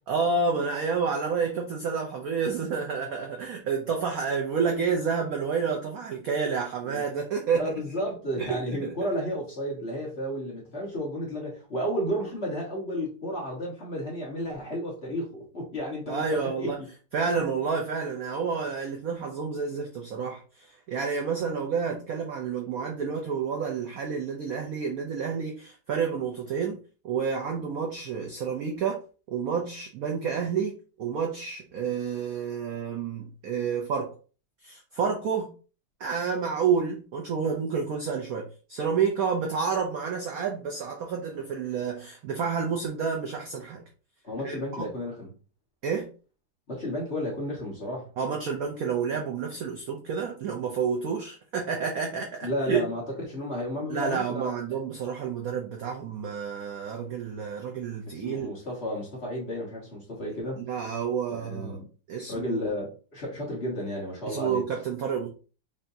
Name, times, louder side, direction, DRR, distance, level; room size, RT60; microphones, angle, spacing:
voice 1, 0.1-7.7 8.4-9.0 16.1-16.8 17.1-26.8 27.0-29.0 29.3-34.1 34.6-35.5 36.0-43.8 44.4-44.9 45.8-46.1 48.2-52.9 53.9-58.5 60.6-61.8 62.1-62.6 64.3-65.3, right 6 dB, 65° right, 0.8 m, -29 dB
voice 2, 7.5-16.9 44.2-45.3 46.7-48.1 52.4-54.8 58.1-60.6 61.3-61.9 62.3-64.6, equal, 35° left, 1.4 m, -32 dB
5.5 x 2.7 x 2.7 m
omnidirectional pair, 2.2 m